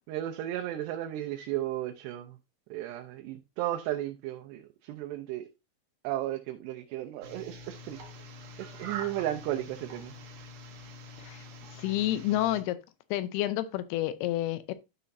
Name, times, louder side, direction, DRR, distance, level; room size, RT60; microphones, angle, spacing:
voice 1, 0.1-2.4 2.7-5.5 6.0-8.0 8.6-10.1, right 13 dB, 90° right, 2.9 m, -34 dB
sound 1, 7.2-12.6, right 2 dB, 60° right, 2.8 m, -45 dB
voice 2, 11.7-12.8 13.1-14.7, left 14 dB, 80° left, 2.6 m, -29 dB
12.5 x 5.9 x 2.6 m
omnidirectional pair, 4.7 m